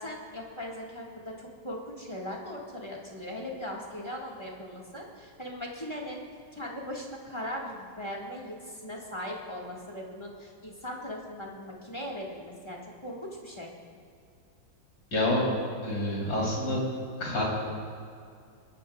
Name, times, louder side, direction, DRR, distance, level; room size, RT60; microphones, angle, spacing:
voice 1, 0.0-6.2 6.5-13.7, left 1 dB, 15° left, -2 dB, 1.5 m, -39 dB
voice 2, 15.1-15.4 15.8-16.8 17.2-17.4, left 1 dB, 75° left, -4 dB, 4.2 m, -27 dB
22.5 x 12.0 x 2.3 m, 2.4 s
omnidirectional pair, 2.1 m